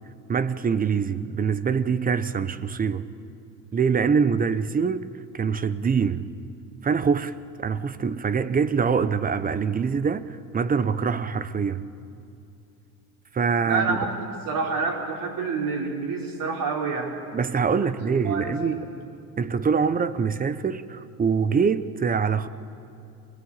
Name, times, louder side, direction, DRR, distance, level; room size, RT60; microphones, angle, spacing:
voice 1, 0.3-3.1 3.7-5.1 5.3-6.3 6.8-11.8 13.3-14.0 17.3-18.9 19.4-22.5, right 6 dB, 20° right, 0.7 m, -24 dB
voice 2, 13.6-14.2 14.4-17.2 17.8-18.8, right 4 dB, 50° right, 4.3 m, -28 dB
23.0 x 19.0 x 8.8 m
supercardioid pair, 110°, 42 cm